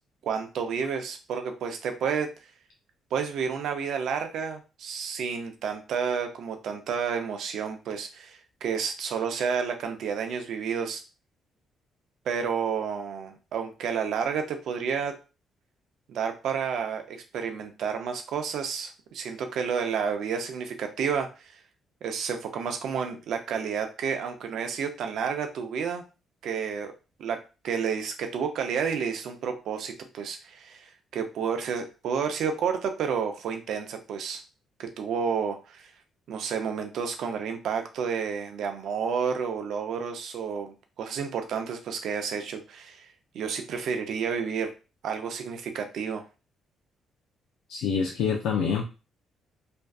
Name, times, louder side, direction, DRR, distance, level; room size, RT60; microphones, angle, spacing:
voice 1, 0.2-2.3 3.1-11.0 12.3-15.1 16.1-21.6 22.0-26.0 26.4-26.9 27.2-34.4 34.8-35.9 36.3-43.1 43.3-44.7 45.0-46.2, right 6 dB, 75° right, 6 dB, 0.5 m, -30 dB
voice 2, 47.7-48.8, left 6 dB, 90° left, 1 dB, 0.4 m, -26 dB
2.5 x 2.3 x 2.3 m, 0.31 s
cardioid pair, 90°, 0 cm